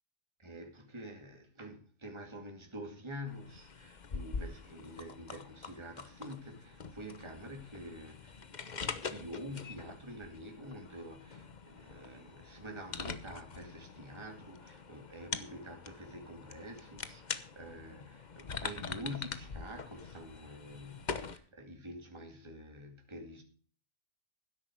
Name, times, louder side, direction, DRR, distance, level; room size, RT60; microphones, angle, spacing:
voice 1, 0.4-23.4, equal, 20° right, 2.2 m, -47 dB
sound 1, 3.3-21.4, left 5 dB, 40° left, 1.0 m, -44 dB
12.5 x 10.5 x 4.5 m
omnidirectional pair, 1.3 m